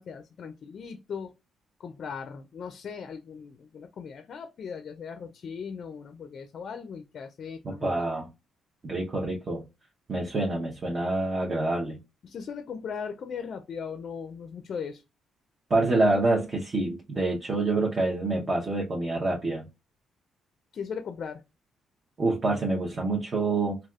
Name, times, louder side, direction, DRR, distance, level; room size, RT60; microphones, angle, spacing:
voice 1, 0.0-1.3 1.8-8.0 12.2-15.0 20.7-21.4, left 6 dB, 55° left, 0.4 m, -38 dB
voice 2, 7.6-8.3 8.8-9.6 10.1-12.0 15.7-19.7 22.2-23.8, right 2 dB, 40° right, 0.7 m, -27 dB
3.3 x 2.3 x 2.3 m
cardioid pair, 90°, 0 cm